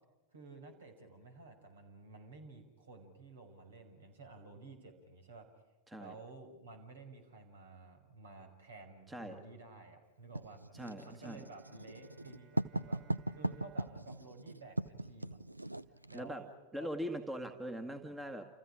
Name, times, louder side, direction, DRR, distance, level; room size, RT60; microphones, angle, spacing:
voice 1, 0.3-5.5 6.0-10.6 11.0-13.0 13.3-15.4 16.1-16.9 17.4-17.9, right 3 dB, 65° right, 6 dB, 5.9 m, -53 dB
Writing, 10.3-16.3, right 1 dB, 85° right, 0.7 m, -39 dB
voice 2, 10.7-11.4 16.1-16.4 16.7-18.4, equal, 10° right, 6 dB, 1.9 m, -41 dB
sound 1, 11.2-15.6, right 6 dB, 40° right, 6.8 m, -63 dB
29.5 x 29.5 x 5.0 m, 1.1 s
figure-of-eight pair, 90°, 0 cm